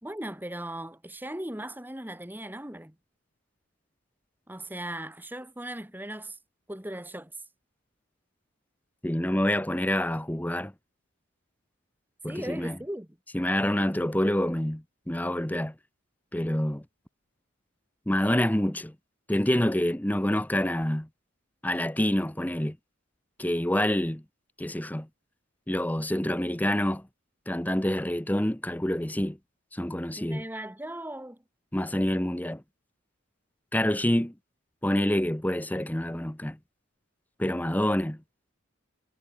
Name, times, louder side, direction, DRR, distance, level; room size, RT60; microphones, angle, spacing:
voice 1, 0.0-3.0 4.5-6.4 6.7-7.3 12.3-13.1 30.2-31.4, right 1 dB, 10° right, 2.1 m, -38 dB
voice 2, 9.0-10.7 12.2-12.8 13.3-15.7 16.3-16.8 18.1-18.9 19.3-21.1 21.6-22.8 23.4-24.2 24.6-25.1 25.7-27.0 27.5-29.4 29.7-30.4 31.7-32.6 33.7-34.3 34.8-36.6 37.4-38.2, left 1 dB, 10° left, 0.9 m, -27 dB
head